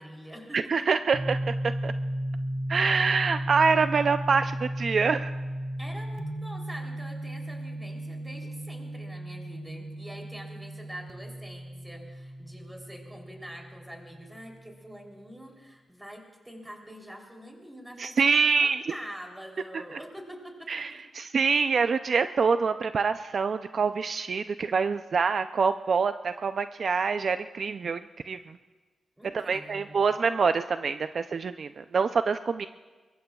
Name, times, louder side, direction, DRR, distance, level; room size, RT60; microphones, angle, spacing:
voice 1, 0.0-1.0 2.7-3.0 5.8-20.9 29.2-30.0, equal, 5° right, 1 dB, 3.2 m, -45 dB
voice 2, 0.5-1.9 2.7-5.3 18.0-18.8 19.7-20.0 20.7-28.4 29.3-32.7, right 5 dB, 50° right, 10 dB, 0.4 m, -26 dB
sound 1, 1.1-14.8, right 1 dB, 25° right, 0.9 m, -35 dB
23.5 x 22.5 x 2.3 m, 1.4 s
wide cardioid pair, 120°, 0 cm